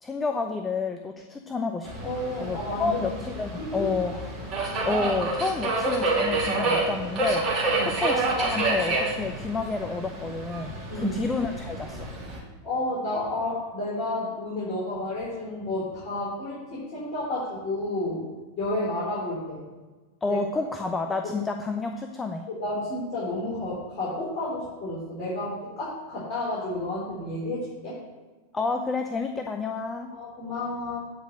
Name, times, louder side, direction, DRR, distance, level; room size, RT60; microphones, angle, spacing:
voice 1, 0.0-2.1 2.4-4.1 4.8-12.1 20.2-22.5 28.5-30.1, left 4 dB, 15° left, 5 dB, 0.6 m, -30 dB
Subway metro underground, 1.8-12.4, right 2 dB, 25° right, 2.7 m, -29 dB
voice 2, 2.0-3.0 3.5-3.9 7.7-8.0 10.9-11.2 12.3-18.2 18.6-19.6 20.3-20.4 22.5-28.0 30.1-31.0, left 2 dB, 35° left, -8 dB, 3.7 m, -31 dB
8.8 x 5.1 x 7.6 m, 1.3 s
figure-of-eight pair, 90°, 0 cm